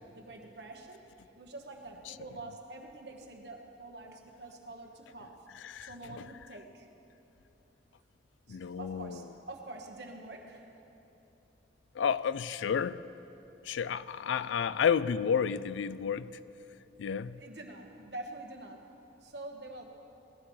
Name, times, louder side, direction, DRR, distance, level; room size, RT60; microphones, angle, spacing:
voice 1, 0.1-1.0 1.3-5.4 5.8-6.9 8.5-10.7 17.3-18.8 19.2-19.8, right 2 dB, 65° right, 1.3 m, -46 dB
voice 2, 5.5-6.2 8.5-9.3 11.9-13.0 13.6-16.4 17.0-17.4, left 7 dB, 85° left, 0.3 m, -31 dB
19.5 x 14.5 x 3.2 m
head